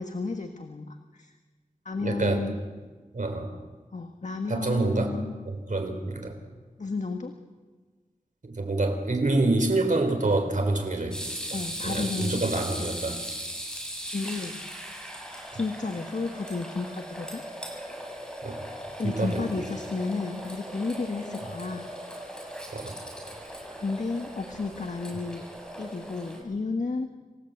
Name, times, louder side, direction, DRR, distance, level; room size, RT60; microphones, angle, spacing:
voice 1, 0.0-1.3 1.8-2.6 3.9-5.4 6.8-7.4 11.5-12.7 14.1-14.5 15.5-17.4 19.0-21.9 23.8-25.4 25.8-27.1, left 3 dB, 60° left, 5 dB, 1.6 m, -32 dB
voice 2, 2.0-2.5 3.1-3.5 4.5-5.2 5.5-6.4 8.4-13.2 18.4-18.7 19.0-19.6 22.7-23.0, right 2 dB, 65° right, 4 dB, 3.9 m, -27 dB
sound 1, 11.1-26.4, equal, 5° left, 7.8 m, -38 dB
27.5 x 16.5 x 8.1 m, 1.4 s
wide cardioid pair, 60°, 14 cm